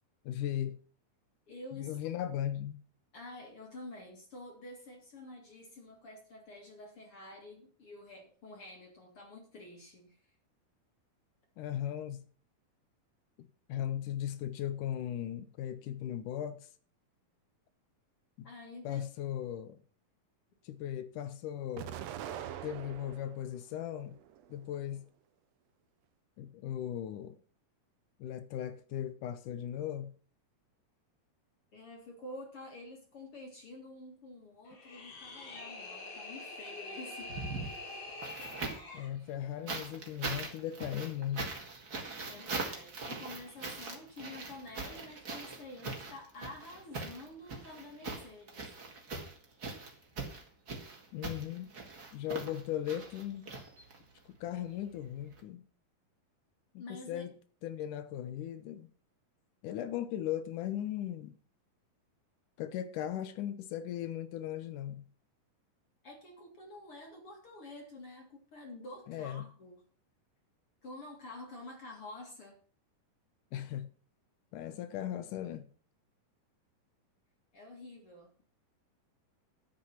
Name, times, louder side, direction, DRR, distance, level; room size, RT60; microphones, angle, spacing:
voice 1, 0.3-0.8 1.7-2.8 11.6-12.2 13.4-16.7 18.4-18.5 18.8-19.8 20.6-21.9 22.6-24.2 24.5-25.0 26.4-27.4 28.2-30.1 38.9-41.4 51.1-51.7 52.1-53.5 54.3-55.6 56.7-57.3 57.6-58.9 59.6-61.4 62.6-65.0 69.1-69.4 73.5-73.9 74.5-75.7, left 11 dB, 75° left, 2.2 m, -37 dB
voice 2, 1.5-2.0 3.1-10.2 18.4-19.0 31.7-37.3 42.3-48.7 56.8-57.3 66.0-69.8 70.8-72.6 77.5-78.4, left 2 dB, 45° left, 2.7 m, -49 dB
Explosion, 21.8-23.4 23.9-24.8, right 10 dB, 80° right, 1.5 m, -43 dB
sound 1, 34.7-39.1, left 2 dB, 90° left, 4.8 m, -45 dB
sound 2, 37.2-39.0 39.7-54.2 55.3-55.4, right 3 dB, 35° right, 2.0 m, -41 dB
11.5 x 8.0 x 5.8 m
omnidirectional pair, 4.0 m